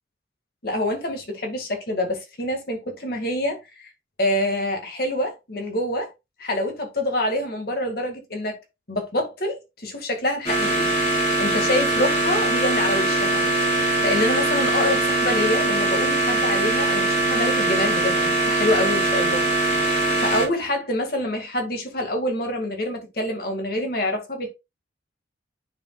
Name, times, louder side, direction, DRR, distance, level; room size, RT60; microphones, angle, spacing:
voice 1, 0.6-3.9 4.2-6.1 6.4-8.6 8.9-10.9 11.2-24.5, left 1 dB, 55° left, 2.0 m, -26 dB
sound 1, 10.4-20.4, right 2 dB, 40° left, 3.3 m, -22 dB
9.3 x 4.9 x 2.4 m
head